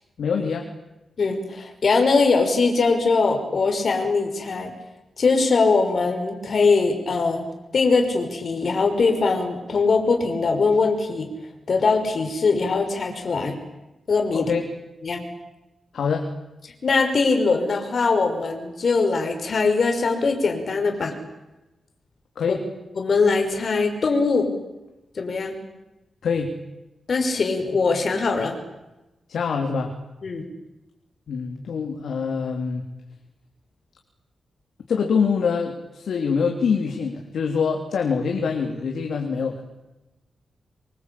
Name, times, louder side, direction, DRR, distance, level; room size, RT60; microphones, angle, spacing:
voice 1, 0.2-0.7 14.3-14.6 15.9-16.3 22.4-22.6 26.2-26.5 29.3-29.9 31.3-32.8 34.9-39.6, left 5 dB, 80° left, 3 dB, 3.5 m, -24 dB
voice 2, 1.2-4.7 5.2-7.5 7.7-11.3 11.7-13.6 14.1-14.5 15.0-15.2 16.8-21.2 22.5-22.6 23.0-24.5 25.2-25.5 27.1-28.6 30.2-30.5, left 4 dB, 50° left, 5 dB, 5.8 m, -21 dB
26.0 x 24.0 x 8.7 m, 1.0 s
wide cardioid pair, 130°, 0 cm